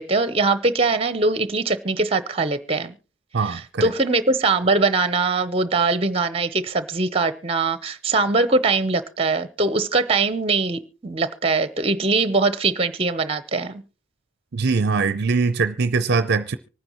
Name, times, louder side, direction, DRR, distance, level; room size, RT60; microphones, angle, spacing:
voice 1, 0.0-2.9 3.5-13.8, right 3 dB, 30° right, 0.8 m, -22 dB
voice 2, 3.3-3.9 14.5-16.6, right 4 dB, 55° right, 0.5 m, -22 dB
25.0 x 9.6 x 3.0 m
head